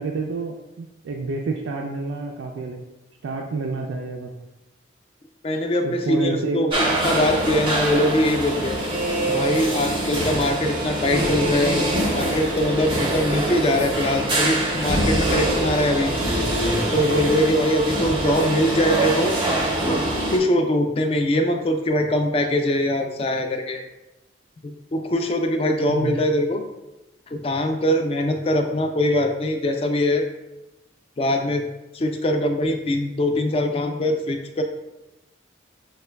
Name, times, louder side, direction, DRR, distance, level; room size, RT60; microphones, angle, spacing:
voice 1, 0.0-2.8 3.2-4.4 5.8-6.7 25.9-26.2, right 3 dB, 85° right, 1 dB, 0.3 m, -29 dB
voice 2, 5.4-6.7 7.0-8.8 9.3-11.8 12.1-16.1 16.9-19.3 19.9-20.0 20.3-23.8 24.6-26.6 27.3-30.2 31.2-31.7 31.9-34.6, left 1 dB, 30° left, 5 dB, 0.3 m, -22 dB
sound 1, 6.7-20.4, right 1 dB, 25° right, 0.5 m, -24 dB
6.2 x 2.2 x 2.2 m, 0.97 s
head